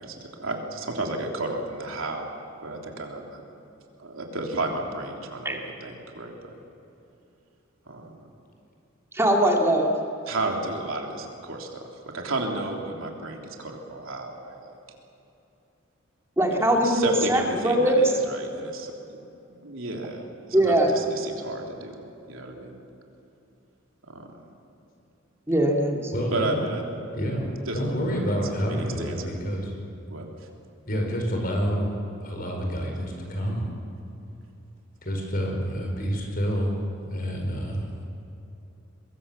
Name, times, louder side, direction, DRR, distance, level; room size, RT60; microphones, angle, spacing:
voice 1, 0.0-2.3 2.6-3.4 4.0-6.5 7.9-8.2 10.3-14.8 16.5-19.2 19.5-22.8 24.1-24.3 26.3-26.8 27.7-28.2 28.5-29.3 30.1-30.3, right 2 dB, 85° right, 1 dB, 3.4 m, -33 dB
voice 2, 9.1-9.9 16.4-18.1 20.5-20.9 25.5-26.1, right 1 dB, 15° right, 0 dB, 2.3 m, -21 dB
voice 3, 26.1-26.7 27.1-29.7 30.9-31.9 32.2-33.7 35.0-36.8 37.1-38.0, equal, 45° left, 2 dB, 5.1 m, -28 dB
24.0 x 21.5 x 7.2 m, 2.9 s
head